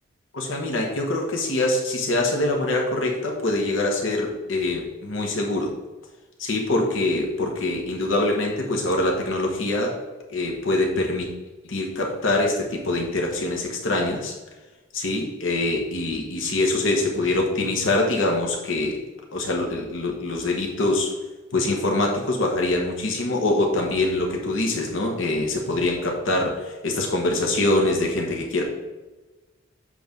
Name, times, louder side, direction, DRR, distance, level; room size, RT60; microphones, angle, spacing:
voice 1, 0.3-5.7 6.4-10.0 10.3-11.3 11.6-14.3 14.9-19.0 19.3-21.1 21.5-28.6, left 2 dB, 85° left, 0 dB, 1.1 m, -24 dB
7.7 x 3.3 x 5.2 m, 1.2 s
head